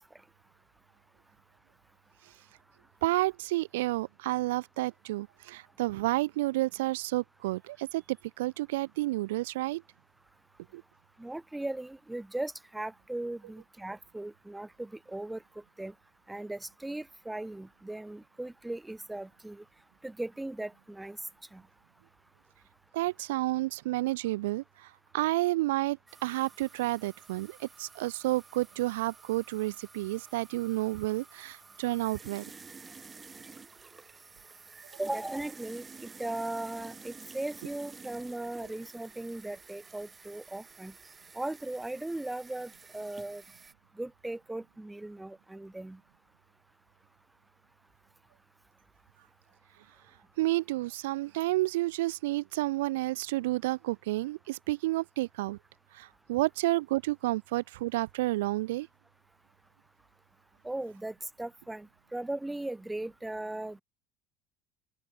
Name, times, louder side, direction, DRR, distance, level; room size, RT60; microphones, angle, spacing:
voice 1, 3.0-8.0 8.4-9.8 10.7-10.8 22.9-32.4 50.4-55.6 55.9-58.9, right 18 dB, 80° right, 0.9 m, -30 dB
voice 2, 11.2-15.4 15.8-15.9 16.3-19.6 20.0-21.2 21.5-21.6 35.0-40.9 41.3-43.4 44.0-46.0 60.6-63.8, right 2 dB, 10° right, 1.0 m, -38 dB
sound 1, 26.1-43.7, right 4 dB, 25° right, 2.7 m, -51 dB
open air
hypercardioid pair, 75°, 0 cm